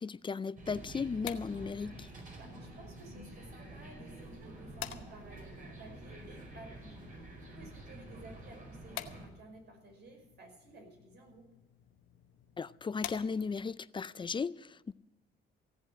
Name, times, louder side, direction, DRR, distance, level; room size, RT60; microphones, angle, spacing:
voice 1, 0.0-2.1 12.6-14.9, left 5 dB, 25° left, 0.4 m, -36 dB
sound 1, 0.6-9.3, right 1 dB, 45° right, 4.7 m, -49 dB
sound 2, 0.9-13.8, left 11 dB, 90° left, 0.9 m, -51 dB
voice 2, 2.4-11.4, right 2 dB, 60° right, 5.4 m, -54 dB
16.5 x 8.0 x 7.6 m
cardioid pair, 90°, 20 cm